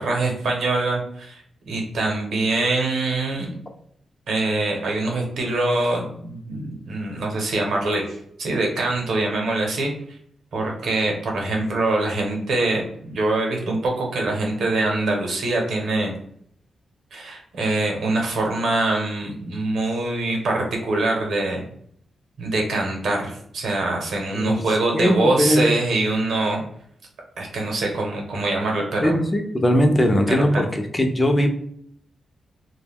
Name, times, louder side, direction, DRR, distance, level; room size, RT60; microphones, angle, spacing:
voice 1, 0.0-3.5 4.3-9.9 10.5-16.2 17.1-21.6 22.4-26.7 27.4-29.2 30.3-30.7, right 2 dB, 80° right, 0 dB, 0.8 m, -24 dB
voice 2, 24.3-25.7 29.0-31.5, equal, 25° left, 4 dB, 0.5 m, -20 dB
2.2 x 2.1 x 3.4 m, 0.67 s
cardioid pair, 80°, 0 cm